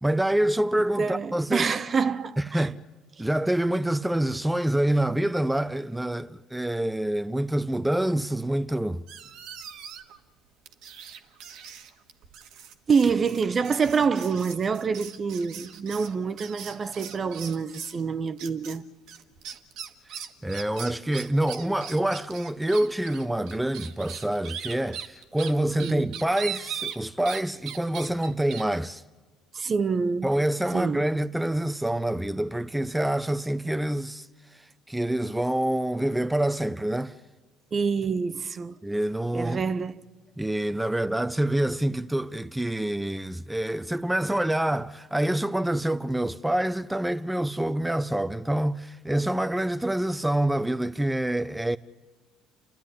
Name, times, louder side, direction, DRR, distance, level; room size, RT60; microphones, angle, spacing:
voice 1, 0.0-1.7 2.5-2.8 3.2-9.0 20.4-29.0 30.2-37.2 38.8-39.6 40.4-51.8, right 1 dB, 5° right, 0.7 m, -26 dB
voice 2, 1.0-2.7 12.9-18.8 25.8-26.2 29.5-30.3 30.7-31.1 37.7-38.8 39.3-40.0, right 5 dB, 35° right, 0.8 m, -26 dB
sound 1, 9.1-10.2 10.6-18.0 18.4-18.8 19.1-27.4 27.7-28.6, right 8 dB, 65° right, 1.5 m, -40 dB
29.5 x 12.0 x 9.7 m
hypercardioid pair, 60°, 0 cm